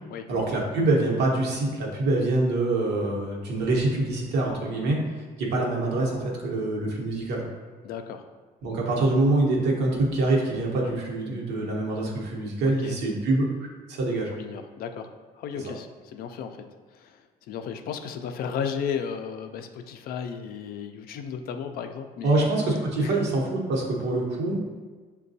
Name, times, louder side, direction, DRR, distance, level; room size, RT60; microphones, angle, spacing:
voice 1, 0.3-7.4 8.6-13.5 13.9-14.3 15.5-15.7 22.2-24.6, right 2 dB, 85° right, -2 dB, 0.9 m, -25 dB
voice 2, 7.8-8.2 12.8-13.0 14.3-15.1 15.4-16.6 16.9-22.5 23.0-23.2, left 7 dB, 60° left, 7 dB, 0.4 m, -34 dB
6.2 x 2.2 x 2.6 m, 1.4 s
cardioid pair, 110°, 17 cm